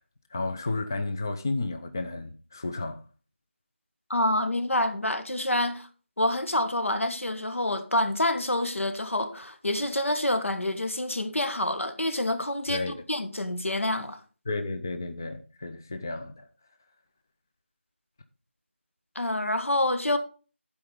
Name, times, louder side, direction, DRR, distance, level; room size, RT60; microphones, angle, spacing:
voice 1, 0.3-3.0 12.7-13.0 14.5-16.5, left 2 dB, 15° left, 0.4 m, -32 dB
voice 2, 4.1-5.9 6.2-14.2 19.2-20.2, left 1 dB, 85° left, 1.8 m, -27 dB
11.5 x 4.8 x 5.2 m
figure-of-eight pair, 170°, 7 cm